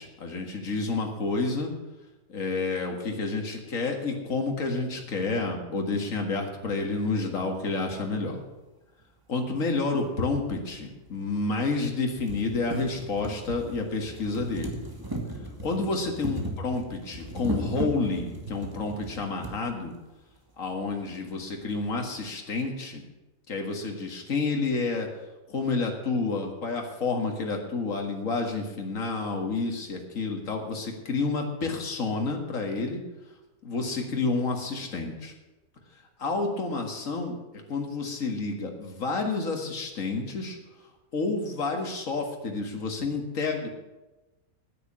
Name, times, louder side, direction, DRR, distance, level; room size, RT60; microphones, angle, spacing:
voice 1, 0.0-1.7 2.3-8.4 9.3-14.8 15.6-19.9 20.6-23.0 23.5-25.1 25.5-33.0 33.6-35.3 36.2-37.4 37.7-40.6 41.1-43.7, left 3 dB, 65° left, 3 dB, 2.2 m, -29 dB
sound 1, 10.0-10.1 11.1-11.2 11.6-11.7 12.0-19.6 20.5-20.6 20.8-20.9, right 1 dB, 15° right, 1.7 m, -36 dB
9.7 x 9.7 x 8.5 m, 1.1 s
omnidirectional pair, 1.5 m